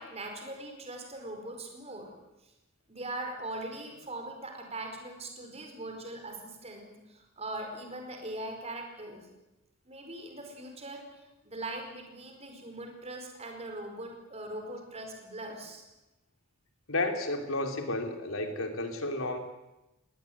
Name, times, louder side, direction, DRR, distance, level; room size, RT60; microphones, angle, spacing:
voice 1, 0.0-2.1 2.4-2.5 2.9-9.3 9.8-15.9, right 2 dB, 30° right, 3 dB, 4.9 m, -41 dB
voice 2, 16.9-19.4, left 2 dB, 85° left, 5 dB, 3.3 m, -32 dB
21.0 x 18.0 x 9.6 m, 0.98 s
head